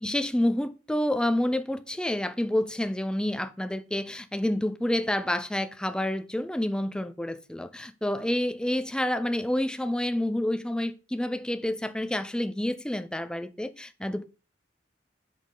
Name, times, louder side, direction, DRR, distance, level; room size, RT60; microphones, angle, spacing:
voice 1, 0.0-14.2, left 1 dB, 5° left, 0.4 m, -28 dB
5.6 x 5.1 x 3.8 m
head